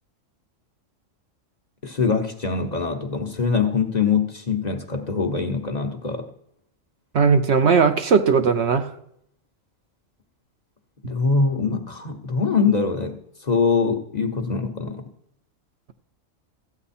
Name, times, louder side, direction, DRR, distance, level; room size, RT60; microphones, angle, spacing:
voice 1, 1.8-6.3 11.0-15.1, left 5 dB, 35° left, 4 dB, 0.9 m, -23 dB
voice 2, 7.1-8.9, right 5 dB, 60° right, 7 dB, 0.9 m, -18 dB
14.0 x 8.6 x 4.2 m, 0.73 s
omnidirectional pair, 1.4 m